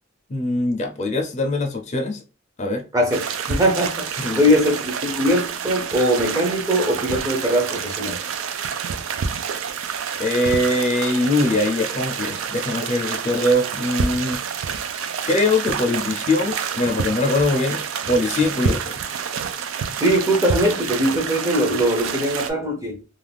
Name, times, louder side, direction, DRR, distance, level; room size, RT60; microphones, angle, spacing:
voice 1, 0.3-2.2 2.6-2.8 4.2-4.5 10.2-14.4 15.3-17.8 18.1-18.9, left 2 dB, 35° left, 0.5 m, -22 dB
voice 2, 2.9-8.2 20.0-23.0, equal, 15° right, 0.5 m, -21 dB
sound 1, 3.1-22.5, right 6 dB, 80° right, 0.4 m, -28 dB
2.4 x 2.3 x 3.3 m
head